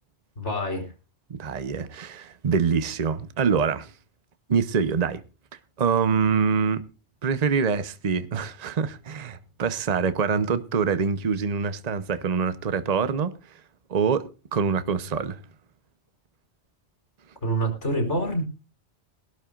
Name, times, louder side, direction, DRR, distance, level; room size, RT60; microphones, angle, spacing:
voice 1, 0.4-0.9 17.4-18.4, right 1 dB, 85° left, 4.7 m, -26 dB
voice 2, 1.3-3.9 4.5-5.2 5.8-6.9 7.2-13.3 13.9-15.4, right 6 dB, 40° right, 0.9 m, -25 dB
22.0 x 12.0 x 2.5 m
omnidirectional pair, 1.2 m